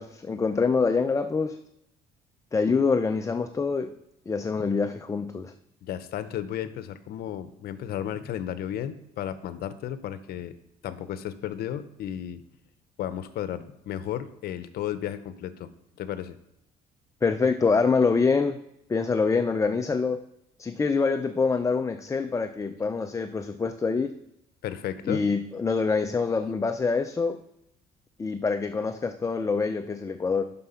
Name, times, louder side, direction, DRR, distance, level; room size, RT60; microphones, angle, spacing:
voice 1, 0.0-1.6 2.5-3.9 4.3-5.5 17.2-18.6 18.9-20.2 20.6-24.1 25.1-27.4 28.2-30.4, left 4 dB, 20° left, 7 dB, 0.5 m, -25 dB
voice 2, 5.8-10.5 10.8-12.4 13.0-15.7 16.0-16.4 24.6-25.3, left 10 dB, 65° left, 13 dB, 0.8 m, -33 dB
7.7 x 5.8 x 5.7 m, 0.82 s
cardioid pair, 110°, 17 cm